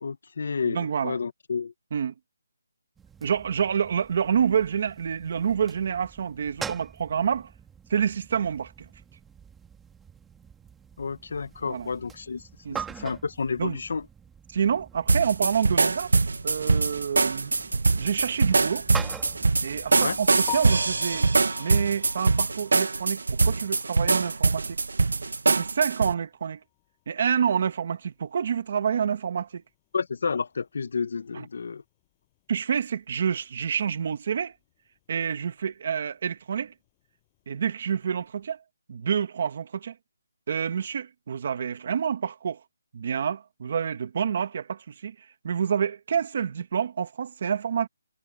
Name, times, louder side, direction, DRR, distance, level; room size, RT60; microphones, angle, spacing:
voice 1, 0.0-1.7 11.0-12.4 12.7-14.1 19.9-20.2 29.9-31.8, left 5 dB, 45° left, 0.9 m, -30 dB
voice 2, 0.6-1.2 1.9-2.1 3.2-7.5 7.9-8.9 11.6-11.9 12.6-12.8 13.6-13.8 14.5-16.1 16.4-17.5 18.0-18.9 19.6-21.3 21.6-24.8 25.5-26.6 27.1-29.6 31.3-31.4 32.5-34.5 35.1-36.7 37.5-38.6 38.9-39.9 40.5-42.6 42.9-45.1 45.4-47.9, right 7 dB, 30° right, 1.4 m, -28 dB
sound 1, 3.0-21.3, right 7 dB, 5° right, 1.3 m, -44 dB
sound 2, 15.1-26.1, right 3 dB, 75° right, 0.7 m, -23 dB
Piano, 20.5-24.4 24.8-24.9 25.4-25.5 25.9-26.0 29.0-29.1 37.6-37.9, left 28 dB, 10° left, 5.7 m, -42 dB
hypercardioid pair, 180°, 0 cm